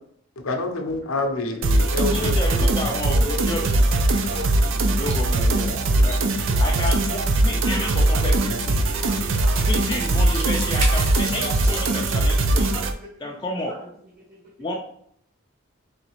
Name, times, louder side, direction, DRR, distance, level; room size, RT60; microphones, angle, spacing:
voice 1, 0.4-2.7, left 2 dB, 80° left, 4 dB, 0.6 m, -27 dB
sound 1, 1.6-12.9, right 2 dB, 65° right, 0.4 m, -21 dB
voice 2, 2.1-4.0 4.7-6.2 6.6-8.8 9.7-12.7 13.2-13.7 14.6-14.7, left 1 dB, 20° left, 0 dB, 0.3 m, -31 dB
sound 2, 2.1-12.1, right 2 dB, 85° right, 0.9 m, -37 dB
voice 3, 3.1-3.6 3.9-4.7 5.7-6.6 7.6-9.7 11.2-11.9 12.5-13.4 13.7-13.8, equal, 40° right, -2 dB, 1.1 m, -38 dB
3.8 x 3.2 x 3.0 m, 0.67 s
head